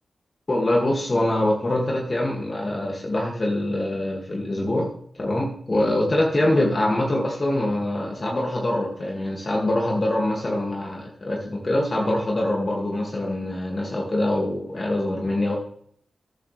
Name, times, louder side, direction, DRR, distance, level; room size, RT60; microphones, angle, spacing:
voice 1, 0.5-15.6, left 1 dB, 45° left, -1 dB, 2.3 m, -24 dB
12.5 x 10.0 x 3.4 m, 0.62 s
cardioid pair, 45°, 0 cm